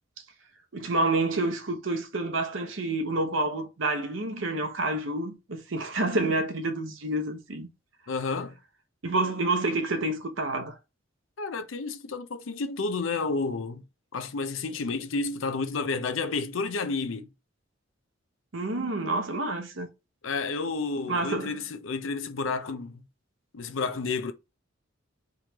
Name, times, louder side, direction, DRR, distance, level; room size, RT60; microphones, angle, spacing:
voice 1, 0.7-7.7 9.0-10.8 18.5-19.9 21.1-21.6, right 2 dB, 75° right, 0.9 m, -28 dB
voice 2, 8.1-8.6 11.4-13.8 14.1-17.3 20.2-23.0 23.5-24.3, left 4 dB, 90° left, 0.6 m, -31 dB
3.7 x 3.2 x 2.9 m
head